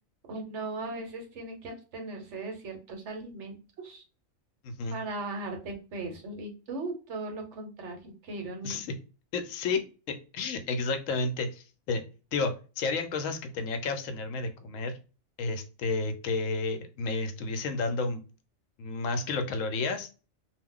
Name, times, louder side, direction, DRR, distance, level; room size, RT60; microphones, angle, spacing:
voice 1, 0.3-4.0 4.9-8.8, right 2 dB, 65° right, 3 dB, 1.0 m, -38 dB
voice 2, 4.6-5.0 8.6-8.9 9.3-9.8 10.1-12.0 12.3-14.9 15.4-18.2 18.8-20.1, left 3 dB, 80° left, 8 dB, 0.9 m, -31 dB
2.4 x 2.2 x 3.6 m, 0.34 s
omnidirectional pair, 1.3 m